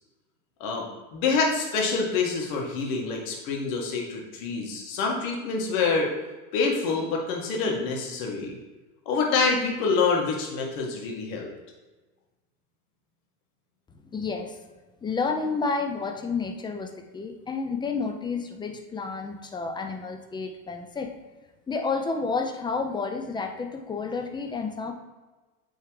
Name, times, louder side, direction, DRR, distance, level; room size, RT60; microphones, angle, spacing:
voice 1, 1.1-6.1 6.5-8.6 9.1-11.5, left 4 dB, 60° left, 0 dB, 1.7 m, -26 dB
voice 2, 14.0-14.6 15.0-21.1 21.7-24.9, left 4 dB, 10° left, 4 dB, 0.5 m, -30 dB
8.8 x 3.6 x 3.2 m, 1.2 s
hypercardioid pair, 95°, 47 cm